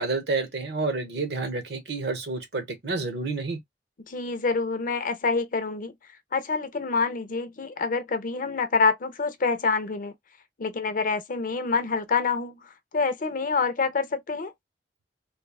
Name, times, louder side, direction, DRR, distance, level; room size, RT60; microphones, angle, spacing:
voice 1, 0.0-3.6, right 3 dB, 65° right, 1.0 m, -29 dB
voice 2, 4.1-5.9 6.3-10.1 10.6-12.6 12.9-14.5, left 4 dB, 50° left, 0.6 m, -26 dB
3.2 x 2.2 x 2.3 m
head